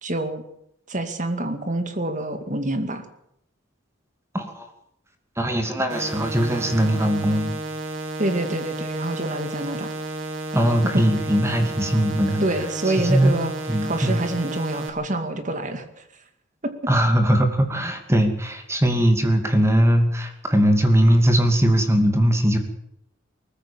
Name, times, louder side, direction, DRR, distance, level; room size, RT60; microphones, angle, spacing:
voice 1, 0.0-0.4 0.9-3.0 8.2-9.9 10.9-11.0 12.4-13.5 13.8-15.8 16.6-16.7, right 1 dB, 40° right, 8 dB, 2.4 m, -26 dB
voice 2, 5.4-7.5 10.5-12.4 12.9-13.4 13.7-14.2 16.9-22.6, equal, 15° right, 6 dB, 2.6 m, -20 dB
sound 1, 5.9-14.9, right 2 dB, 80° right, 2.6 m, -32 dB
20.0 x 15.0 x 8.8 m, 0.77 s
head